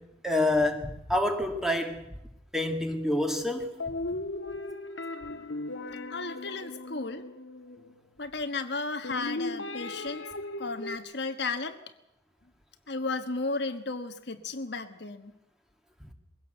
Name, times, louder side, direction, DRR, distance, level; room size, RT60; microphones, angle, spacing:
voice 1, 0.0-2.0 2.5-3.8 16.0-16.1, left 1 dB, ahead, 4 dB, 2.0 m, -28 dB
sound 1, 3.8-8.0 9.0-11.0, left 2 dB, 85° left, 1.6 m, -37 dB
voice 2, 6.1-7.2 8.2-10.3 10.6-11.8 12.9-15.3, left 3 dB, 60° left, 8 dB, 1.3 m, -34 dB
22.0 x 17.0 x 7.9 m, 0.84 s
head